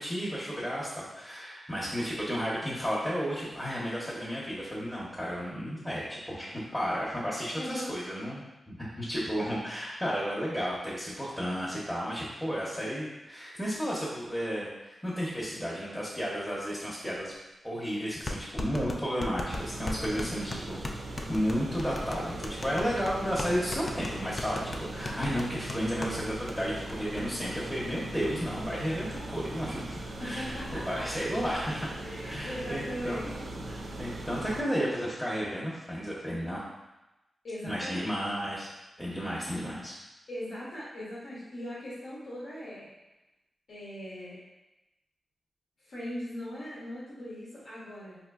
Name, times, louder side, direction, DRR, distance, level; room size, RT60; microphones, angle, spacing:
voice 1, 0.0-8.4 8.7-17.3 17.6-20.8 21.3-31.9 32.2-36.6 37.6-38.7 39.0-39.9, equal, 5° left, -8 dB, 0.7 m, -33 dB
voice 2, 7.6-7.9 20.1-20.6 30.2-31.2 31.6-33.3 37.4-38.4 40.3-42.9 43.7-44.4 45.8-48.2, equal, 85° left, -10 dB, 1.0 m, -40 dB
sound 1, 17.3-17.4 18.3-26.2 26.5-26.6 26.9-27.2, left 2 dB, 35° left, 0.3 m, -37 dB
sound 2, 19.5-34.6, right 1 dB, 65° right, 0.4 m, -40 dB
4.3 x 2.7 x 2.3 m, 0.99 s
wide cardioid pair, 110°, 0 cm